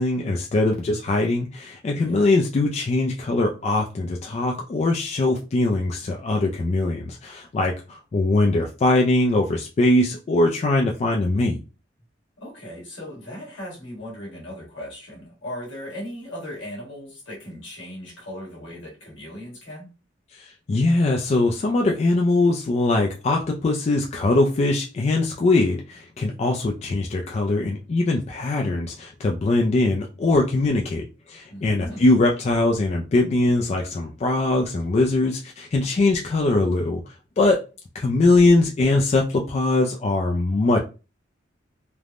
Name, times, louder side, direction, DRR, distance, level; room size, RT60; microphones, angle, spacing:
voice 1, 0.0-11.6 20.3-37.7 37.9-40.8, left 2 dB, 35° left, 0.3 m, -21 dB
voice 2, 1.9-2.3 12.4-19.9 31.5-32.1, left 1 dB, 75° left, 1.4 m, -37 dB
3.3 x 2.1 x 2.4 m
head